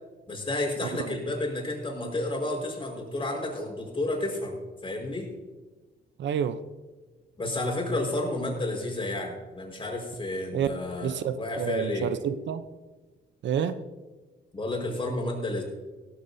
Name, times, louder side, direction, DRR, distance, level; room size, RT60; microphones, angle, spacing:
voice 1, 0.3-5.3 7.4-12.1 14.5-15.6, left 2 dB, 25° left, 1 dB, 4.9 m, -31 dB
voice 2, 6.2-6.6 10.5-10.7 11.0-12.7 13.4-13.8, right 8 dB, 65° right, 12 dB, 0.7 m, -29 dB
16.5 x 14.0 x 2.7 m, 1.2 s
cardioid pair, 90°, 20 cm